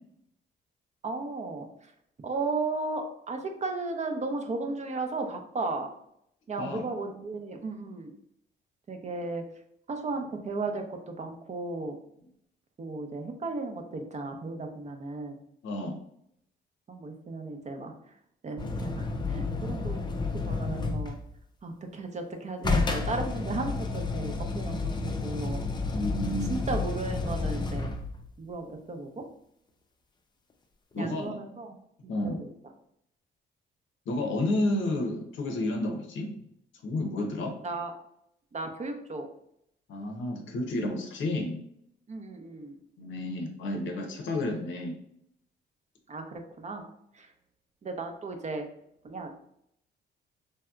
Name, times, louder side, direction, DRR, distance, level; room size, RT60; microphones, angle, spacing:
voice 1, 1.0-1.9 2.2-5.9 6.5-8.1 8.9-9.4 9.9-12.0 12.8-15.4 16.9-17.9 18.4-21.2 21.6-25.6 26.5-28.0 28.4-29.2 31.0-31.8 32.0-32.5 37.6-37.9 38.5-39.3 42.1-42.8 46.1-46.9 47.1-47.3 47.8-48.7 49.0-49.3, right 3 dB, 35° right, 5 dB, 0.6 m, -35 dB
voice 2, 15.6-16.0 25.9-26.6 30.9-31.4 32.1-32.4 34.1-36.3 36.8-37.5 39.9-41.6 43.0-45.0, left 1 dB, 75° left, 3 dB, 0.7 m, -31 dB
sound 1, 18.6-21.3 22.6-28.2 31.1-31.2, left 3 dB, 20° left, 0.4 m, -31 dB
3.3 x 2.7 x 2.3 m, 0.72 s
cardioid pair, 90°, 20 cm